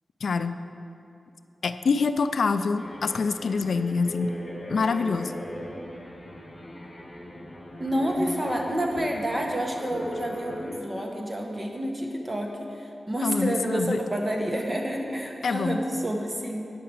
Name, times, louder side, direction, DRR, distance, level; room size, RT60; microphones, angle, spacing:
voice 1, 0.2-0.6 1.6-4.3 4.7-5.4 13.2-14.0 15.4-15.8, left 4 dB, 80° left, 10 dB, 0.3 m, -26 dB
sound 1, 2.8-10.8, left 1 dB, 40° left, 2.1 m, -39 dB
voice 2, 7.8-16.7, equal, 25° right, 1 dB, 1.4 m, -29 dB
9.4 x 5.8 x 7.1 m, 2.7 s
wide cardioid pair, 70°, 0 cm